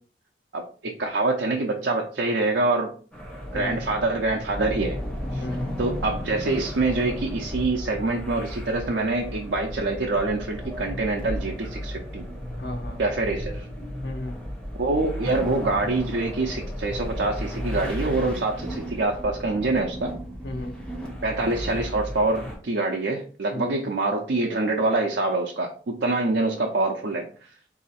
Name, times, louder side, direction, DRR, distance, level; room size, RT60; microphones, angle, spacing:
voice 1, 0.5-2.9 3.5-5.0 5.3-5.4 5.8-12.2 13.0-13.7 14.8-20.1 21.2-27.3, right 2 dB, 75° right, 0 dB, 0.6 m, -25 dB
sound 1, 3.1-22.6, equal, 5° left, 0.9 m, -34 dB
voice 2, 3.5-3.9 5.4-5.7 12.5-13.0 14.0-14.4 20.4-20.8 23.5-23.8, left 1 dB, 65° left, 2 dB, 0.7 m, -34 dB
4.0 x 2.7 x 4.1 m, 0.41 s
head